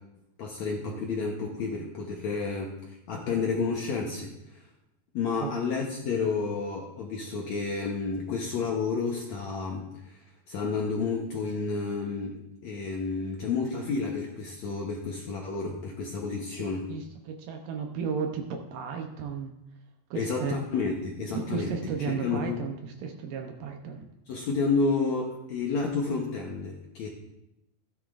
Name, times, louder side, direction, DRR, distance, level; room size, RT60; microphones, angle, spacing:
voice 1, 0.4-2.8 3.1-4.6 5.1-10.2 10.5-16.8 20.1-21.7 22.1-22.6 24.3-27.1, left 4 dB, 70° left, -1 dB, 1.8 m, -30 dB
voice 2, 16.6-19.6 20.1-20.6 21.3-24.1, right 6 dB, 75° right, 3 dB, 2.3 m, -34 dB
15.5 x 10.0 x 2.5 m, 0.86 s
omnidirectional pair, 4.5 m